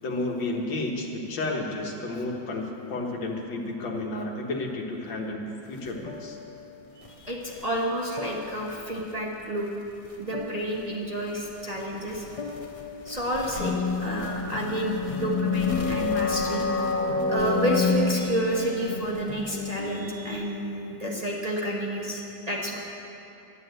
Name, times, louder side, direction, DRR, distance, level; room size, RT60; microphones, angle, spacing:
voice 1, 0.0-6.4, left 2 dB, 85° left, 1 dB, 2.1 m, -32 dB
sound 1, 5.6-20.4, left 2 dB, 25° left, 0.7 m, -40 dB
voice 2, 7.0-9.7 10.2-12.3 13.0-13.7 14.0-16.7 17.3-22.8, right 1 dB, 25° right, -3 dB, 1.1 m, -30 dB
sound 2, 13.6-19.0, left 4 dB, 60° left, 1.7 m, -27 dB
11.0 x 10.5 x 8.0 m, 2.9 s
omnidirectional pair, 2.0 m